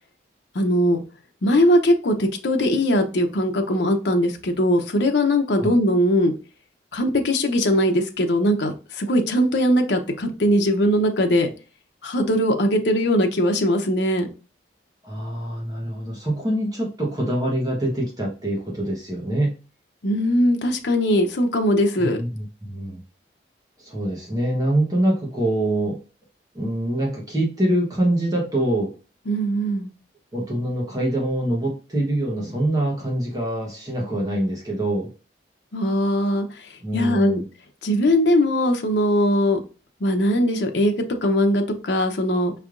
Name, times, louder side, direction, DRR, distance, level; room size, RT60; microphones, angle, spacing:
voice 1, 0.5-1.0 1.4-6.3 6.9-11.5 12.0-14.3 20.0-22.2 29.3-29.9 35.7-37.4 37.8-39.6 40.0-42.5, equal, 75° left, 4 dB, 0.7 m, -20 dB
voice 2, 15.0-19.6 22.0-23.0 23.8-26.0 26.5-28.9 30.3-35.1 36.8-37.4, right 1 dB, 20° right, -2 dB, 1.1 m, -24 dB
5.3 x 3.3 x 2.4 m, 0.35 s
head